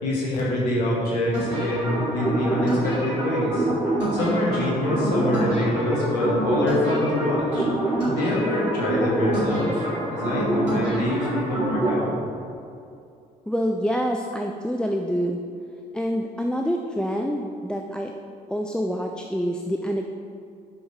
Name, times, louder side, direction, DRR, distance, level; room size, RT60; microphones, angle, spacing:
voice 1, 0.0-3.7 4.1-7.7 8.1-12.1, left 1 dB, 75° left, -4 dB, 2.1 m, -25 dB
sound 1, 1.3-12.0, right 1 dB, 85° right, 2.1 m, -26 dB
voice 2, 13.5-15.4 15.9-18.1 18.5-20.1, equal, 5° left, 2 dB, 0.6 m, -26 dB
9.8 x 6.4 x 5.1 m, 2.5 s
figure-of-eight pair, 45°, 21 cm